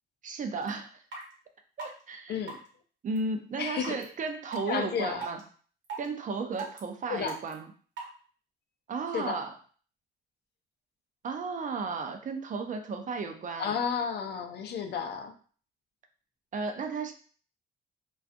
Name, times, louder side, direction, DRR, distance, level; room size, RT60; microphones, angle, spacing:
voice 1, 0.2-1.0 1.8-2.4 3.0-5.4 6.0-7.7 8.9-9.5 11.2-13.7 16.5-17.1, right 4 dB, 40° right, 6 dB, 0.4 m, -34 dB
sound 1, 0.6-0.7 1.1-1.2 1.8-1.9 2.5-2.7 3.2-3.3 3.8-4.0 4.5-4.6 5.2-5.4 5.8-6.1 6.6-6.8 7.3-7.5 8.0-8.1, right 4 dB, 65° right, 0.9 m, -37 dB
voice 2, 3.6-4.0 4.6-5.3 7.1-7.4 9.1-9.4 13.6-15.3, left 7 dB, 55° left, 6 dB, 0.4 m, -32 dB
2.4 x 2.3 x 2.5 m, 0.43 s
cardioid pair, 90°, 20 cm